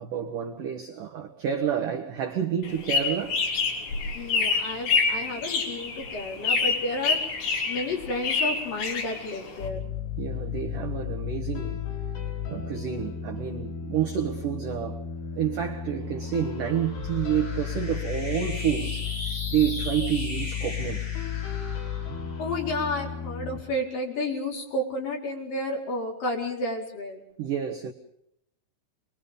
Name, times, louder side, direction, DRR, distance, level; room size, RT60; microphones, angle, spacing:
voice 1, 0.0-3.4 10.2-11.8 12.5-15.1 15.3-19.1 19.5-21.1 27.4-27.9, right 9 dB, 65° right, 2.1 m, -29 dB
sound 1, 2.6-9.7, left 4 dB, 70° left, 5.6 m, -27 dB
voice 2, 4.1-7.2 7.7-9.8 22.4-27.2, left 1 dB, 45° left, 5.9 m, -31 dB
sound 2, 9.6-23.6, left 8 dB, 90° left, 7.3 m, -33 dB
sound 3, 15.2-23.9, left 2 dB, 30° left, 5.3 m, -40 dB
28.0 x 22.0 x 5.3 m
omnidirectional pair, 5.5 m